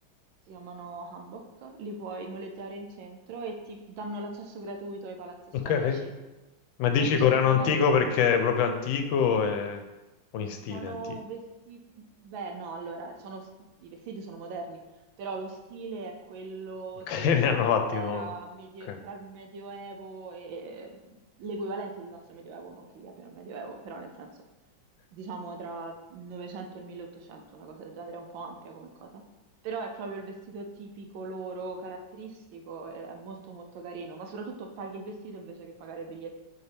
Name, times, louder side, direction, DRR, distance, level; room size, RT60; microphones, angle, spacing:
voice 1, 0.5-6.1 7.0-8.3 10.7-13.5 13.8-14.8 15.2-24.3 25.1-29.2 29.6-36.3, right 3 dB, 80° right, 3 dB, 1.5 m, -40 dB
voice 2, 5.5-6.0 6.8-9.8 10.3-11.0 17.1-18.3 18.9-19.0, left 7 dB, 80° left, 6 dB, 1.4 m, -24 dB
7.0 x 4.3 x 3.4 m, 1.1 s
omnidirectional pair, 2.1 m